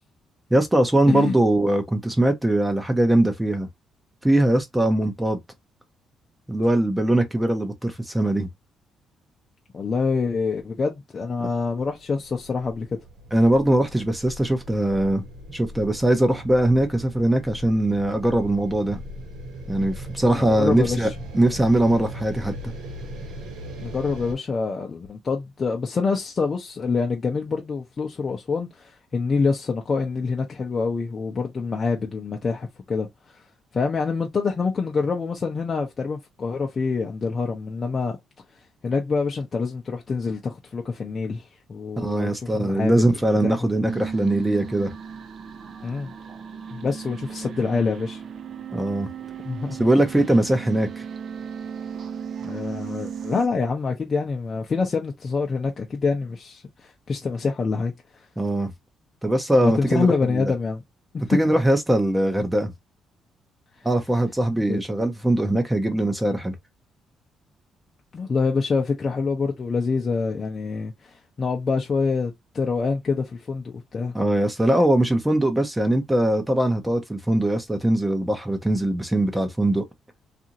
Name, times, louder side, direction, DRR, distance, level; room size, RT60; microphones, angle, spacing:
voice 1, 0.5-3.7 4.2-5.4 6.5-8.5 13.3-15.2 15.5-19.0 19.7-22.7 42.0-44.9 48.7-49.1 49.8-51.0 58.4-58.7 59.2-60.5 61.3-62.7 63.8-66.6 74.1-79.8, right 1 dB, 10° right, 0.7 m, -21 dB
voice 2, 9.7-12.9 20.3-21.1 23.8-33.1 33.7-38.2 38.8-43.6 45.8-46.1 46.7-48.2 49.4-49.9 52.4-57.9 59.6-60.8 61.4-61.5 64.7-64.8 68.1-74.1, left 4 dB, 40° left, 0.6 m, -26 dB
sound 1, 12.0-24.3, equal, 90° right, 1.0 m, -38 dB
sound 2, 43.9-53.5, right 7 dB, 60° right, 0.5 m, -36 dB
2.7 x 2.5 x 2.7 m
cardioid pair, 90°, 0 cm